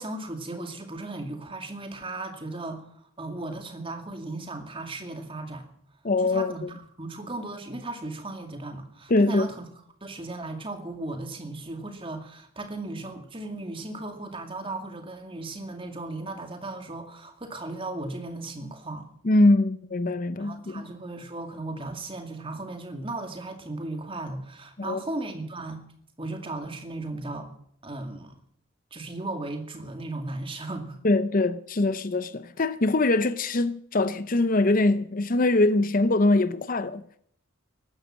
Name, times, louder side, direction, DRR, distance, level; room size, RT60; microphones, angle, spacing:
voice 1, 0.0-5.7 6.2-9.7 10.0-19.1 20.4-25.8 26.2-27.5 27.8-28.3 28.9-31.0, right 2 dB, 25° right, 2.2 m, -36 dB
voice 2, 6.0-6.7 9.1-9.5 19.2-20.9 24.8-25.0 31.0-37.2, left 2 dB, 40° left, 0.6 m, -23 dB
15.5 x 12.0 x 7.6 m
head